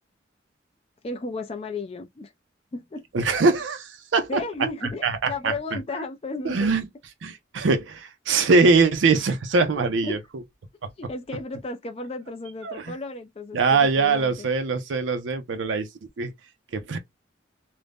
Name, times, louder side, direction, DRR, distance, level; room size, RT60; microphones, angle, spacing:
voice 1, 1.0-2.3 2.7-3.0 4.3-6.7 9.8-10.2 11.0-14.5, left 3 dB, 30° left, 0.4 m, -34 dB
voice 2, 3.1-4.4 5.0-5.5 6.4-6.9 7.2-10.2 12.6-12.9 13.5-15.9 16.2-16.3 16.7-17.0, right 4 dB, 80° right, 0.5 m, -22 dB
2.4 x 2.1 x 3.3 m
head